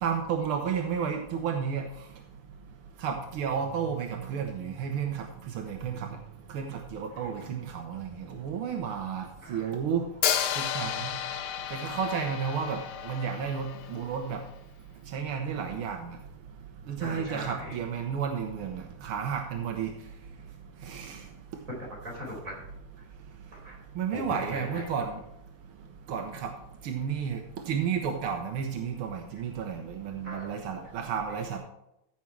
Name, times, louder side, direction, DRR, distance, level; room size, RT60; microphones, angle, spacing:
voice 1, 0.0-1.8 3.0-6.1 6.5-10.0 10.6-11.1 11.7-12.8 13.1-14.4 15.1-16.2 16.9-19.9 20.9-21.2 24.0-25.1 26.1-26.5 26.8-27.4 27.7-31.6, right 7 dB, 85° right, 3 dB, 1.9 m, -32 dB
Hi-hat, 10.2-14.2, left 10 dB, 80° left, 1.7 m, -32 dB
voice 2, 17.0-17.8 21.7-22.7 23.0-23.1 23.5-23.8 24.1-24.9 30.2-30.6 31.3-31.6, equal, 35° right, -3 dB, 4.5 m, -40 dB
14.5 x 6.1 x 4.5 m, 0.84 s
omnidirectional pair, 2.3 m